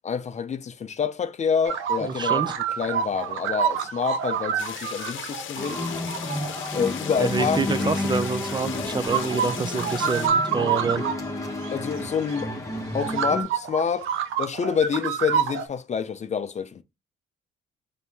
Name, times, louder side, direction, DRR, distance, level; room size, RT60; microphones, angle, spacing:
voice 1, 0.0-2.5 2.8-5.9 6.7-7.9 11.7-12.5 12.9-14.1 14.4-16.8, left 6 dB, 35° left, 0.5 m, -27 dB
sound 1, 1.6-6.9 7.5-8.6 9.0-11.2 11.6-11.7 12.3-12.4 13.0-15.7, right 7 dB, 80° right, 0.6 m, -27 dB
voice 2, 2.1-2.6 7.2-11.0 11.3-11.6, right 4 dB, 20° right, 0.4 m, -27 dB
sound 2, 4.6-10.3, left 8 dB, 75° left, 0.7 m, -37 dB
sound 3, 5.6-13.4, left 1 dB, 15° left, 1.0 m, -31 dB
4.2 x 2.8 x 3.4 m
cardioid pair, 90°, 20 cm